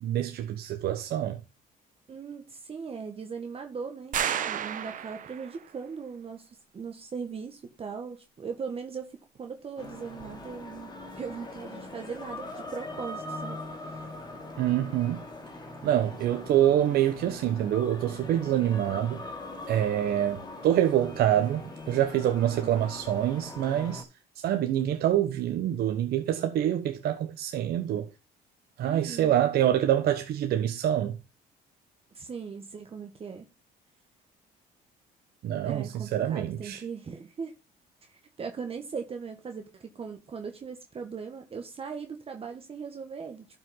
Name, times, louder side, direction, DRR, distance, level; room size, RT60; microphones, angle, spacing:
voice 1, 0.0-1.4 14.6-15.2 15.8-19.3 19.7-24.0 24.4-28.1 28.8-31.2 35.4-36.8, right 11 dB, 70° right, 1.2 m, -26 dB
voice 2, 2.1-14.2 22.6-22.9 28.8-29.4 32.1-33.5 35.6-37.5 38.0-43.5, right 5 dB, 35° right, 1.6 m, -39 dB
sound 1, 4.1-5.6, right 9 dB, 50° right, 1.1 m, -31 dB
sound 2, 9.8-24.0, left 2 dB, 25° left, 2.5 m, -41 dB
12.0 x 5.7 x 3.9 m
cardioid pair, 110°, 17 cm